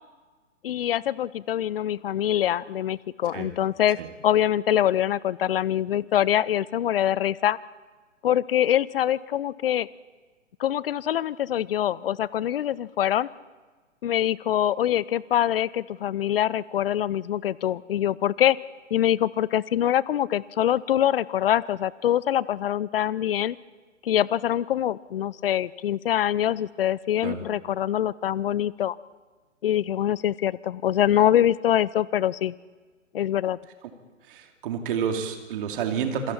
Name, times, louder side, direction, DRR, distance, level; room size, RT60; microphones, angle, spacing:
voice 1, 0.6-4.0 4.2-7.6 8.2-9.9 10.6-13.3 14.0-18.6 18.9-23.6 24.0-29.0 29.6-32.5 33.1-33.6, left 11 dB, 50° left, 21 dB, 0.6 m, -24 dB
voice 2, 34.3-36.3, right 7 dB, 45° right, 4 dB, 2.7 m, -29 dB
27.5 x 21.5 x 4.3 m, 1.4 s
figure-of-eight pair, 130°, 38 cm